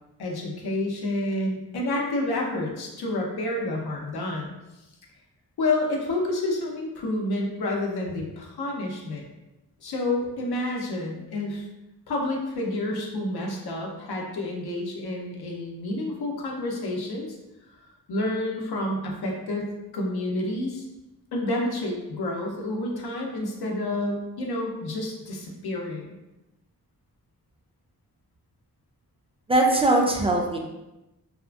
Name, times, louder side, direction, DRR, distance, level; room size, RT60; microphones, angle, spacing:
voice 1, 0.2-4.5 5.6-9.3 9.8-11.6 12.1-17.4 18.1-20.8 21.3-26.2, left 1 dB, 85° left, -1 dB, 0.6 m, -29 dB
voice 2, 29.5-30.6, right 2 dB, 15° right, 0 dB, 0.3 m, -20 dB
2.8 x 2.4 x 2.2 m, 0.98 s
wide cardioid pair, 90°, 37 cm